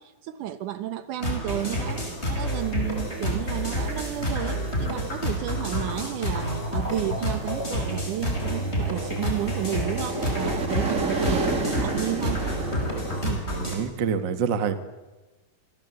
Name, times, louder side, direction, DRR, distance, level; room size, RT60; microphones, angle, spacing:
voice 1, 0.0-12.4, right 13 dB, 70° right, 11 dB, 2.3 m, -32 dB
sound 1, 1.2-13.8, equal, 15° left, 5.6 m, -29 dB
sound 2, 1.5-13.3, right 3 dB, 30° right, 1.9 m, -34 dB
sound 3, 2.8-13.6, left 1 dB, 85° left, 8.6 m, -44 dB
voice 2, 13.2-14.8, right 6 dB, 50° right, 9 dB, 1.4 m, -27 dB
27.0 x 26.0 x 7.9 m, 1.2 s
omnidirectional pair, 4.1 m